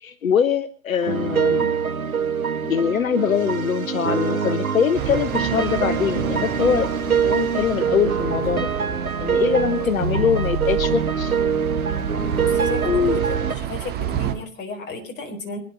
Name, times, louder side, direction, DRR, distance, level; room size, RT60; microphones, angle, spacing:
voice 1, 0.0-1.7 2.6-6.9 7.2-8.7 9.2-11.4 12.8-13.2, left 7 dB, 75° left, 15 dB, 1.0 m, -23 dB
sound 1, 1.0-13.5, right 6 dB, 90° right, 1.5 m, -24 dB
sound 2, 4.9-14.3, right 11 dB, 25° right, 2.2 m, -30 dB
voice 2, 12.3-15.6, left 3 dB, 25° left, 3 dB, 4.5 m, -34 dB
24.5 x 11.0 x 4.4 m, 0.37 s
figure-of-eight pair, 120°, 42 cm